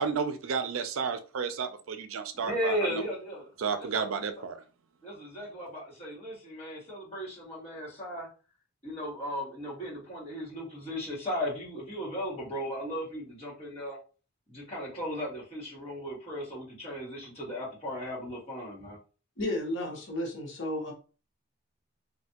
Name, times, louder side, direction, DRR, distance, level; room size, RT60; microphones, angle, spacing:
voice 1, 0.0-3.0 3.6-4.6, right 6 dB, 75° right, 0.4 m, -32 dB
voice 2, 2.3-3.5 3.8-4.4 5.0-8.3 8.8-14.0 14.5-19.0, equal, 30° left, 1.6 m, -36 dB
voice 3, 19.4-20.9, left 1 dB, 60° left, 1.1 m, -33 dB
3.3 x 2.5 x 2.8 m
head